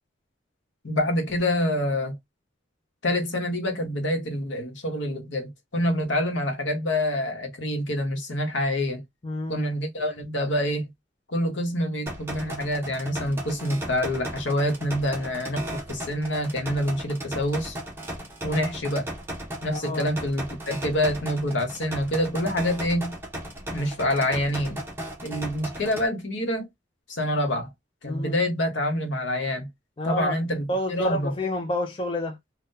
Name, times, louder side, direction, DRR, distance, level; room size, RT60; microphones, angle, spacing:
voice 1, 0.8-2.2 3.0-9.0 9.5-10.9 11.3-17.7 18.4-19.1 19.6-23.2 23.7-24.8 25.2-26.7 27.1-27.7 28.0-29.7 30.0-31.3, left 1 dB, 75° left, 1.0 m, -26 dB
voice 2, 9.2-9.7 19.7-20.0 28.0-28.4 30.0-30.4 30.7-32.4, left 1 dB, 25° left, 0.4 m, -29 dB
sound 1, 12.1-26.1, right 1 dB, 10° right, 0.8 m, -36 dB
3.7 x 2.3 x 2.6 m
head